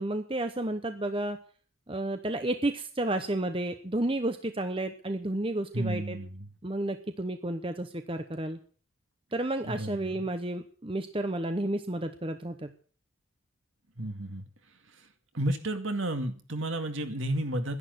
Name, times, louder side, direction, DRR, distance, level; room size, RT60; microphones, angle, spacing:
voice 1, 0.0-1.4 1.9-6.2 6.6-8.6 9.3-12.7, right 1 dB, 25° right, 8 dB, 0.9 m, -31 dB
voice 2, 5.7-6.5 9.6-10.2 14.0-14.4 15.3-17.8, right 1 dB, 70° right, 6 dB, 2.2 m, -32 dB
11.5 x 11.0 x 7.9 m, 0.43 s
head